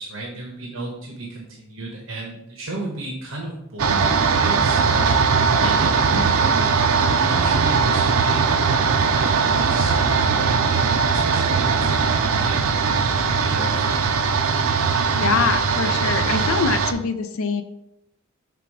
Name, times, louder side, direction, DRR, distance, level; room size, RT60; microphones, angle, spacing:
voice 1, 0.0-5.1 5.5-6.7 7.3-8.5 8.9-13.0 13.3-14.3, right 2 dB, 75° right, 0 dB, 1.1 m, -33 dB
sound 1, 3.8-16.9, right 5 dB, 90° right, 0.5 m, -20 dB
voice 2, 14.9-17.6, left 5 dB, 80° left, 8 dB, 0.5 m, -24 dB
6.0 x 3.5 x 4.7 m, 0.81 s
head